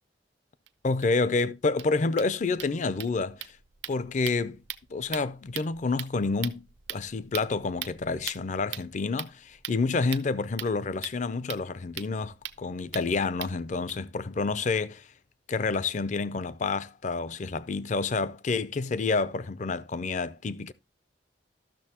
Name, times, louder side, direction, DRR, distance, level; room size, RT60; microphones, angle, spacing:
sound 1, 0.7-0.8 1.0-1.1 1.4-1.5 1.7-13.9, right 11 dB, 80° right, 0.6 m, -42 dB
voice 1, 0.8-3.5 3.9-4.6 4.9-6.6 6.9-15.1 15.5-20.7, left 4 dB, 45° left, 0.4 m, -29 dB
13.0 x 6.4 x 2.9 m
head